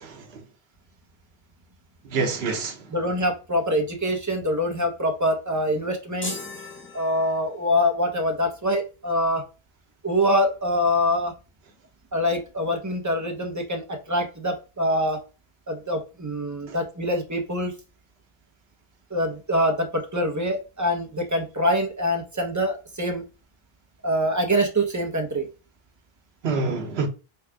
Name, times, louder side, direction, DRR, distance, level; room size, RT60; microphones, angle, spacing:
voice 1, 0.0-0.4 2.1-2.9 16.7-16.8 26.4-27.1, right 4 dB, 85° right, 1.1 m, -27 dB
voice 2, 2.9-6.3 6.9-9.4 10.0-11.3 12.1-15.2 15.7-17.7 19.1-23.2 24.0-25.5, equal, 20° right, 0.8 m, -24 dB
sound 1, 6.2-7.8, left 2 dB, 15° left, 0.6 m, -37 dB
3.5 x 2.4 x 4.5 m
omnidirectional pair, 1.0 m